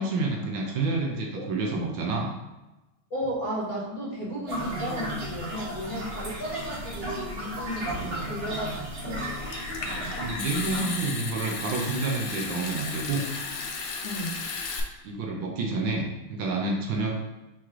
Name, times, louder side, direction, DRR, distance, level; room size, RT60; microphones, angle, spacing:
voice 1, 0.0-2.3 8.0-8.3 8.7-8.9 10.2-13.2 15.0-17.1, right 3 dB, 70° right, 0 dB, 1.3 m, -29 dB
voice 2, 3.1-8.7 9.0-9.6 9.8-10.1 14.0-14.4, right 1 dB, 50° left, -6 dB, 1.6 m, -34 dB
sound 1, 4.5-10.8, equal, 50° right, 1.9 m, -35 dB
Water tap faucet / Sink (filling or washing) / Trickle dribble, 9.2-14.8, left 4 dB, 70° left, 1.2 m, -35 dB
4.7 x 3.1 x 3.6 m, 1.0 s
omnidirectional pair, 2.3 m